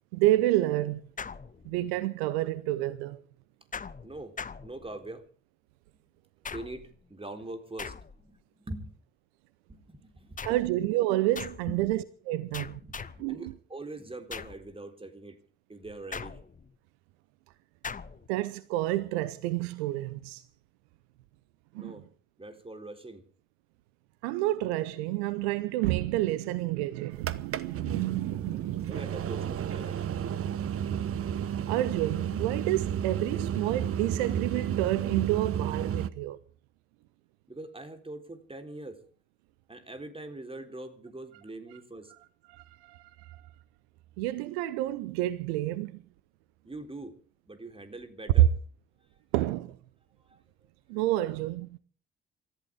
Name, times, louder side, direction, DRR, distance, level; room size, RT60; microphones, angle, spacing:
voice 1, 0.1-1.0 1.6-3.2 10.4-12.8 13.2-13.5 18.3-20.4 21.7-21.9 24.2-28.9 31.7-36.4 42.5-43.4 44.2-46.0 49.3-49.8 50.9-51.8, right 16 dB, 70° right, 0.8 m, -29 dB
sound 1, 1.2-2.0 3.7-5.2 6.4-7.0 7.8-8.4 10.4-10.8 11.4-11.8 12.5-13.3 14.3-14.7 16.1-16.8 17.8-18.3, left 5 dB, 25° left, 1.0 m, -41 dB
voice 2, 4.0-5.3 6.5-8.9 9.7-10.5 11.7-11.8 12.8-15.4 15.7-16.4 21.8-22.1 22.4-23.3 28.9-30.1 37.5-39.0 39.7-42.1 46.6-47.2 47.5-48.5 50.3-50.7, right 2 dB, 15° right, 3.8 m, -43 dB
sound 2, 27.2-36.1, right 9 dB, 45° right, 1.1 m, -32 dB
27.5 x 14.5 x 3.5 m
figure-of-eight pair, 45°, 33 cm